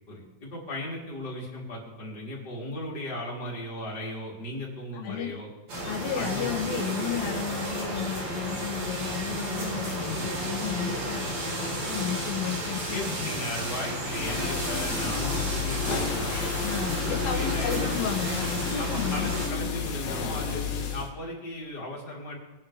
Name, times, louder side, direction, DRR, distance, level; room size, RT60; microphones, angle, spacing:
voice 1, 0.1-5.5 6.1-6.5 12.9-16.5 17.0-18.0 18.7-20.6 20.9-22.4, left 1 dB, 30° left, -4 dB, 4.2 m, -36 dB
voice 2, 5.0-5.4 5.9-11.3 11.6-13.3 16.6-19.3, left 9 dB, 80° left, 2 dB, 3.1 m, -33 dB
sound 1, 5.7-19.5, right 1 dB, 50° right, 4.7 m, -32 dB
sound 2, 14.1-21.1, left 6 dB, 55° left, 2.6 m, -32 dB
21.5 x 10.5 x 3.6 m, 1.1 s
omnidirectional pair, 4.1 m